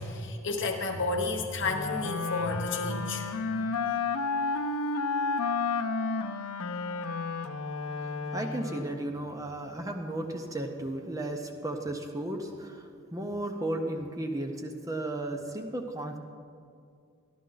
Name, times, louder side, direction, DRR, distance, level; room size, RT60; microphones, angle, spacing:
voice 1, 0.0-3.3, left 3 dB, 55° left, 4 dB, 1.0 m, -31 dB
Wind instrument woodwind instrument, 1.6-9.1, left 4 dB, 85° left, 0.6 m, -31 dB
voice 2, 7.9-16.2, right 1 dB, 15° right, 4 dB, 0.6 m, -35 dB
13.0 x 12.0 x 3.9 m, 2.3 s
head